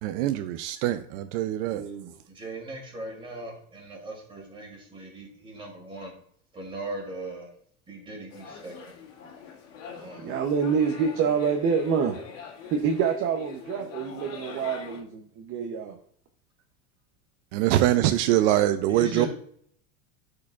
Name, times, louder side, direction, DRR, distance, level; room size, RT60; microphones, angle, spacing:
voice 1, 0.0-1.9 17.5-19.3, right 13 dB, 70° right, 10 dB, 0.5 m, -23 dB
voice 2, 1.7-2.1 10.2-12.2 12.7-15.9, right 6 dB, 35° right, 4 dB, 0.7 m, -27 dB
voice 3, 2.3-6.1 6.5-7.5 7.9-8.9 10.0-10.8 18.9-19.3, right 2 dB, 15° right, -1 dB, 2.6 m, -39 dB
sound 1, 8.3-15.0, left 6 dB, 80° left, 2.0 m, -44 dB
12.0 x 4.8 x 2.4 m, 0.63 s
supercardioid pair, 155°, 38 cm